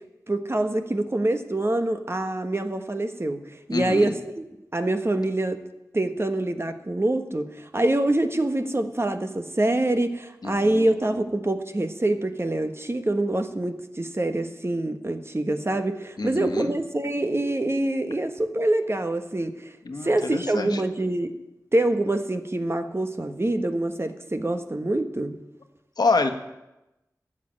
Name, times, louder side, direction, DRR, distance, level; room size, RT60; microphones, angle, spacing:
voice 1, 0.3-3.4 3.7-4.4 4.7-5.6 5.9-19.7 20.0-21.3 21.7-25.3, right 1 dB, 40° right, 7 dB, 1.2 m, -25 dB
voice 2, 3.7-4.1 10.4-10.9 16.2-16.7 19.8-20.8 26.0-26.3, left 3 dB, 75° left, 6 dB, 1.2 m, -26 dB
13.0 x 7.6 x 8.7 m, 0.96 s
wide cardioid pair, 45°, 7 cm